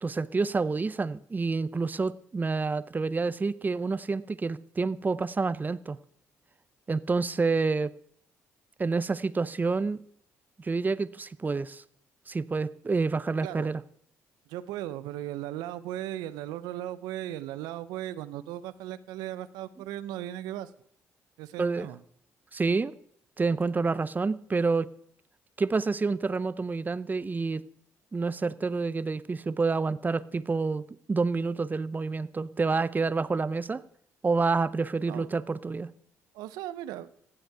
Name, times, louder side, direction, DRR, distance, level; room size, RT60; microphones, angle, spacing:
voice 1, 0.0-6.0 6.9-7.9 8.8-10.0 10.6-11.8 12.3-13.8 21.6-21.9 22.5-22.9 23.4-24.9 25.6-27.6 28.1-33.8 34.2-35.9, right 4 dB, 25° right, 17 dB, 0.6 m, -28 dB
voice 2, 14.5-20.7 21.4-22.0 35.1-35.3 36.3-37.1, right 13 dB, 80° right, 15 dB, 0.6 m, -37 dB
15.5 x 8.0 x 4.7 m, 0.65 s
supercardioid pair, 60°, 7 cm